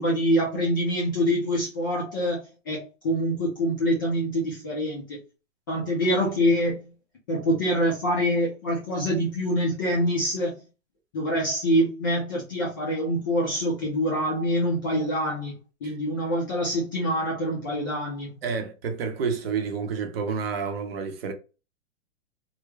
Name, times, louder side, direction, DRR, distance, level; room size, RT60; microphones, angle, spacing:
voice 1, 0.0-2.4 2.7-5.2 5.7-6.9 7.3-10.5 11.1-15.5 15.8-18.3, equal, 15° left, 0.4 m, -25 dB
voice 2, 18.4-21.3, right 5 dB, 50° right, 0.8 m, -29 dB
3.3 x 2.1 x 3.3 m
hypercardioid pair, 160°, 39 cm